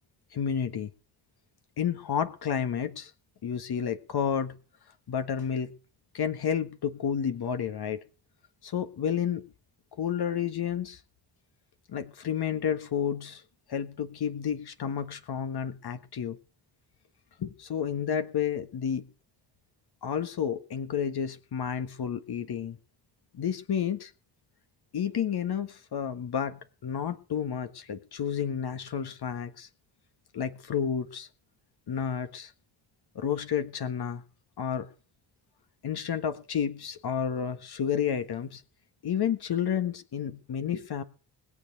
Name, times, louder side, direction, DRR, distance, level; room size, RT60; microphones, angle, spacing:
voice 1, 0.3-0.9 1.8-3.1 3.4-4.6 5.1-5.7 6.1-8.0 8.6-9.4 10.0-11.0 11.9-13.4 13.7-16.4 17.4-19.1 20.0-22.8 23.3-24.1 24.9-29.7 30.3-31.3 31.9-32.5 33.1-34.2 34.6-34.9 35.8-38.6 39.0-41.0, left 8 dB, 60° left, 1.5 m, -31 dB
20.5 x 7.2 x 6.6 m
supercardioid pair, 60°, 44 cm